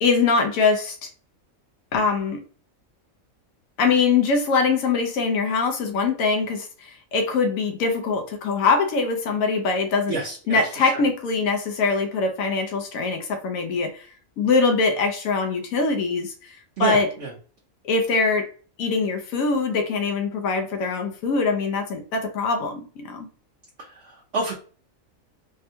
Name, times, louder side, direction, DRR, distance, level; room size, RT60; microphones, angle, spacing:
voice 1, 0.0-1.1 1.9-2.4 3.8-10.2 10.5-14.1 14.4-17.1 17.8-18.5 18.8-23.3, left 4 dB, 85° left, 4 dB, 1.0 m, -23 dB
voice 2, 10.1-11.0 16.8-17.3 23.8-24.5, right 3 dB, 55° right, -3 dB, 0.9 m, -29 dB
3.5 x 2.1 x 2.7 m, 0.40 s
omnidirectional pair, 1.4 m